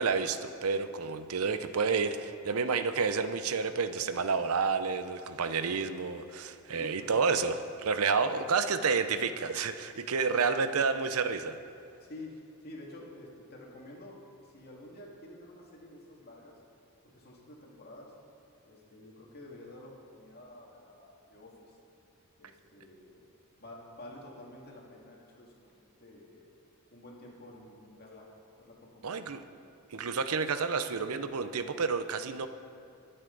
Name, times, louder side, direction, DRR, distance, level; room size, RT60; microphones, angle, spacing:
voice 1, 0.0-11.6 29.0-29.4 29.9-32.5, right 5 dB, 80° right, 10 dB, 0.6 m, -30 dB
voice 2, 6.7-7.2 8.2-8.8 12.0-14.2 14.4-16.5 17.0-18.1 18.6-21.8 22.4-23.2 23.6-25.7 26.0-26.5 26.9-28.3 28.6-29.3, left 1 dB, 45° left, -2 dB, 2.2 m, -49 dB
22.5 x 8.0 x 3.9 m, 2.6 s
head